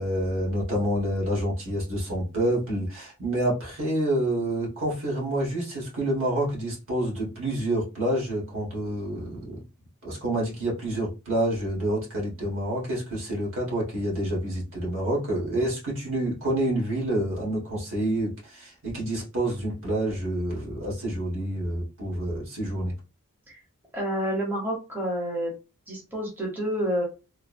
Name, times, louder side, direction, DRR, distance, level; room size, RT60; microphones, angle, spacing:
voice 1, 0.0-9.6 10.0-22.9, right 1 dB, 65° right, -3 dB, 1.5 m, -28 dB
voice 2, 23.9-25.5 25.9-27.0, equal, 10° right, -3 dB, 0.9 m, -28 dB
3.2 x 2.1 x 2.5 m, 0.30 s
head